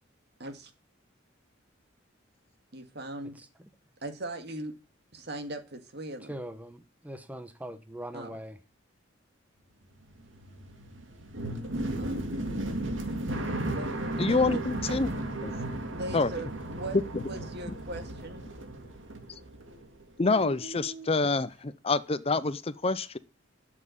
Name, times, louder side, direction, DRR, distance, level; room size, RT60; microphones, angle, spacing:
voice 1, 0.4-0.7 2.7-3.4 4.0-4.7 5.1-6.4 8.1-8.4 11.9-12.2 13.7-13.9 14.3-14.6 15.9-18.5, right 2 dB, 55° right, 2.1 m, -39 dB
voice 2, 6.3-8.6, right 1 dB, 10° right, 1.0 m, -41 dB
sound 1, 9.9-20.0 20.3-21.1, right 1 dB, 70° right, 2.3 m, -35 dB
voice 3, 14.2-15.1 15.4-15.5 16.1-16.3 17.1-17.2 20.2-23.2, left 3 dB, 30° left, 0.6 m, -27 dB
12.5 x 7.5 x 8.6 m
head